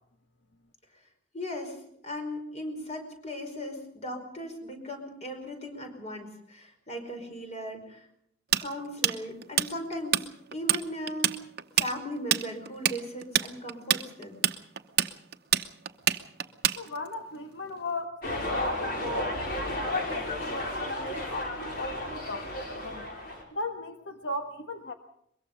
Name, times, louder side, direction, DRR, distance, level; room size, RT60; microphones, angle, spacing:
voice 1, 1.3-8.1 8.6-11.4 11.8-14.4, equal, 35° left, 4 dB, 5.2 m, -38 dB
Tools, 8.5-10.2 10.5-10.8 11.1-17.1, right 10 dB, 55° right, 0.9 m, -25 dB
voice 2, 16.7-19.4 19.9-23.0 23.5-24.9, left 2 dB, 70° left, 5 dB, 1.5 m, -36 dB
sound 1, 18.2-23.4, left 1 dB, 55° left, 5.2 m, -33 dB
22.5 x 22.0 x 5.4 m, 0.71 s
head